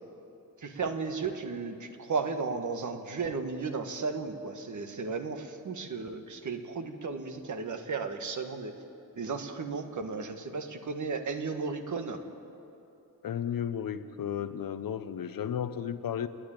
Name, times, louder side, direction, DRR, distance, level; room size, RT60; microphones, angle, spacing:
voice 1, 0.6-8.7 9.1-12.2, right 4 dB, 60° right, 6 dB, 1.5 m, -34 dB
voice 2, 13.2-16.3, left 9 dB, 75° left, 11 dB, 0.9 m, -33 dB
29.5 x 10.0 x 9.0 m, 2.8 s
wide cardioid pair, 135°, 34 cm